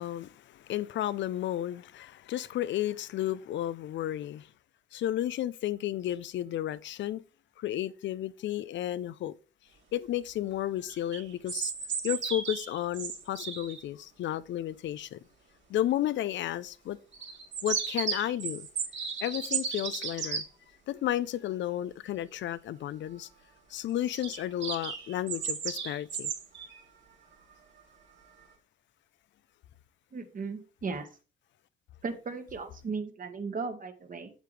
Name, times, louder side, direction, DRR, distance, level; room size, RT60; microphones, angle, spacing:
voice 1, 0.0-4.5 4.9-7.2 7.6-9.3 9.9-11.7 12.0-15.2 15.7-17.0 17.6-18.7 19.2-20.4 20.9-23.3 23.7-26.3, left 12 dB, 70° left, 0.5 m, -32 dB
sound 1, 10.9-13.8 17.1-20.4 24.0-26.8, right 6 dB, 65° right, 3.7 m, -34 dB
voice 2, 30.1-31.1 32.0-34.3, right 4 dB, 45° right, 1.5 m, -36 dB
8.1 x 7.6 x 3.3 m
cardioid pair, 90°, 20 cm